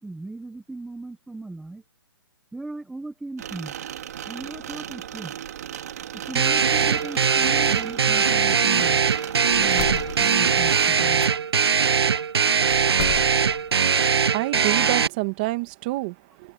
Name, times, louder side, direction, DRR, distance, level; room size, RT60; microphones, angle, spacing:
voice 1, 0.0-1.8 2.5-3.7 4.3-5.3 6.1-9.0 9.5-9.8, right 2 dB, ahead, 1.0 m, -37 dB
sound 1, 3.4-11.0, right 10 dB, 40° right, 3.0 m, -36 dB
sound 2, 6.3-15.1, right 6 dB, 75° right, 0.9 m, -21 dB
sound 3, 9.5-11.3 12.7-13.7, left 13 dB, 30° left, 1.4 m, -34 dB
voice 2, 14.1-16.5, right 20 dB, 20° right, 1.8 m, -28 dB
hypercardioid pair, 170°, 13 cm